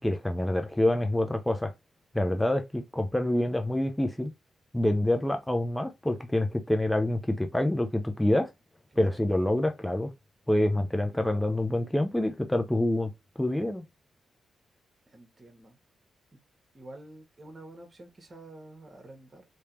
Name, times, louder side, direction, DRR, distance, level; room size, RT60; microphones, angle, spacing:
voice 1, 0.0-1.7 2.1-4.3 4.7-8.5 9.0-10.1 10.5-13.1 13.4-13.8, left 1 dB, 10° left, 0.8 m, -26 dB
voice 2, 8.9-9.2 11.1-11.3 15.1-15.8 16.7-19.4, right 2 dB, 35° right, 1.6 m, -48 dB
3.2 x 3.1 x 3.0 m
supercardioid pair, 50°, 0 cm